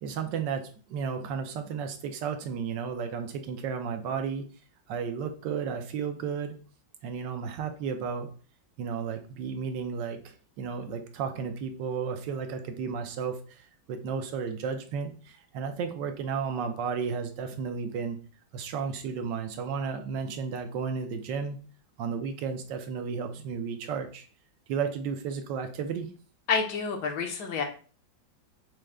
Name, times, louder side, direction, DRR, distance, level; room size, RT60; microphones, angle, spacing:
voice 1, 0.0-4.5 4.9-6.6 7.0-8.3 8.8-18.2 18.5-21.6 22.0-24.3 24.7-26.1, right 6 dB, 75° right, 6 dB, 1.3 m, -33 dB
voice 2, 26.5-27.6, left 5 dB, 70° left, 3 dB, 1.3 m, -28 dB
6.1 x 2.1 x 3.3 m, 0.38 s
omnidirectional pair, 2.0 m